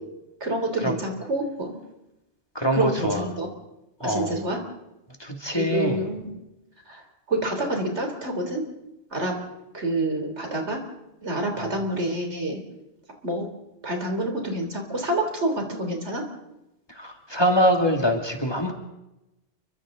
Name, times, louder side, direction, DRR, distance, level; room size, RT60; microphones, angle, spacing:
voice 1, 0.4-1.8 2.7-3.5 4.0-4.6 5.5-6.4 6.9-8.7 9.1-9.3 9.7-10.8 11.2-12.6 13.2-13.5 13.8-16.3, right 1 dB, 70° right, 3 dB, 3.8 m, -27 dB
voice 2, 2.5-3.2 4.0-4.4 5.2-6.0 11.6-11.7 16.9-18.7, equal, 20° left, 2 dB, 2.4 m, -24 dB
29.5 x 23.5 x 3.8 m, 0.94 s
omnidirectional pair, 1.2 m